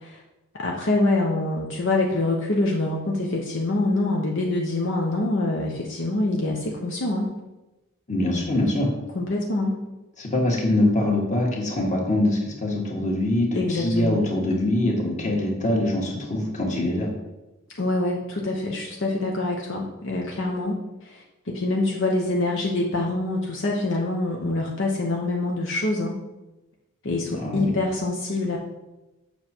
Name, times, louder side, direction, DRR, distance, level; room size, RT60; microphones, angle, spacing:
voice 1, 0.5-7.3 9.1-9.8 13.5-14.2 17.8-26.2 27.0-28.6, left 2 dB, 65° left, -1 dB, 0.9 m, -25 dB
voice 2, 8.1-8.9 10.2-17.1 27.4-27.7, left 1 dB, 35° left, -1 dB, 1.7 m, -23 dB
7.2 x 5.9 x 4.4 m, 1.0 s
head